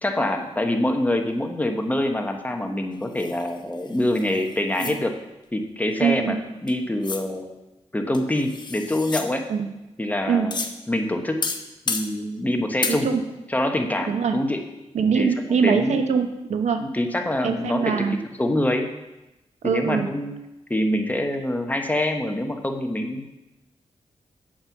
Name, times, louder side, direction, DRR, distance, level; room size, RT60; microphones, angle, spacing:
voice 1, 0.0-5.2 5.5-6.4 6.6-7.5 7.9-9.4 10.0-10.6 10.9-11.4 11.9-13.1 13.5-14.6 15.1-15.3 15.6-16.0 16.9-18.9 19.6-20.4 20.7-23.3, left 1 dB, 15° left, 4 dB, 1.1 m, -25 dB
sound 1, 3.2-5.0 6.7-6.8 7.0-7.2 8.1-9.3 10.5-10.7 11.4-12.1 12.8-13.0, left 4 dB, 40° left, 0.9 m, -31 dB
voice 2, 6.0-6.4 9.5-9.7 10.3-10.5 12.9-13.2 14.1-14.4 14.9-16.8 17.4-18.2 19.6-20.1, right 6 dB, 85° right, 7 dB, 0.8 m, -23 dB
8.8 x 5.5 x 7.3 m, 0.98 s
wide cardioid pair, 95°, 11 cm